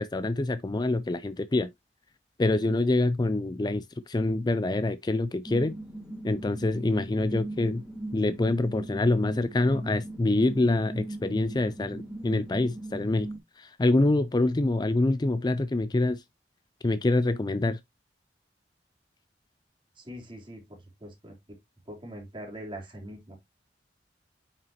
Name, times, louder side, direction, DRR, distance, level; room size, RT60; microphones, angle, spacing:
voice 1, 0.0-1.7 2.4-5.8 6.2-7.8 8.1-13.3 13.6-16.2 16.8-17.8, left 2 dB, 25° left, 0.4 m, -26 dB
sound 1, 5.4-13.4, right 1 dB, 5° right, 3.3 m, -39 dB
voice 2, 20.0-20.6 21.0-21.3 21.9-23.4, equal, 30° right, 3.5 m, -42 dB
9.1 x 5.9 x 2.9 m
head